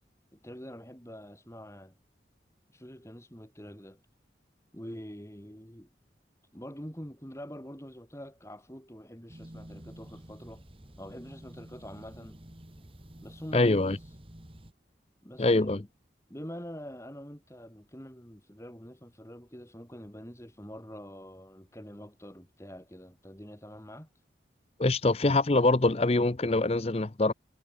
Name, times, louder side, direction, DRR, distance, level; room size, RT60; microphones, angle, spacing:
voice 1, 0.3-1.9 2.7-4.0 4.7-5.9 6.5-10.6 11.0-12.4 13.2-14.0 15.2-15.9 16.3-24.1, equal, 15° left, 4.3 m, -45 dB
sound 1, 9.3-14.7, right 1 dB, 30° right, 1.8 m, -49 dB
voice 2, 13.5-14.0 15.4-15.8 24.8-27.3, left 2 dB, 35° left, 0.7 m, -24 dB
head